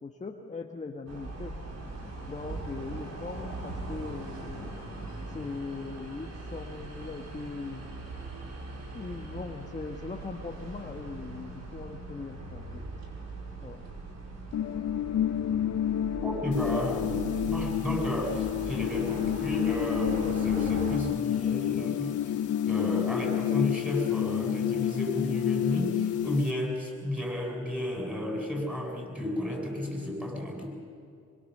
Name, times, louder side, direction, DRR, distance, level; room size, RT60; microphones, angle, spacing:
voice 1, 0.0-1.5 2.3-4.7 5.3-7.8 8.9-12.8 13.6-13.8, left 3 dB, 25° left, 2 dB, 1.6 m, -40 dB
sound 1, 1.1-21.0, right 2 dB, 60° right, 5.4 m, -40 dB
sound 2, 14.5-26.4, left 10 dB, 60° left, 0.7 m, -29 dB
voice 2, 16.2-30.7, left 1 dB, 5° right, 1 dB, 7.9 m, -32 dB
sound 3, 16.5-26.5, left 9 dB, 75° left, 3.5 m, -52 dB
25.0 x 23.5 x 6.8 m, 2.4 s
cardioid pair, 90°, 30 cm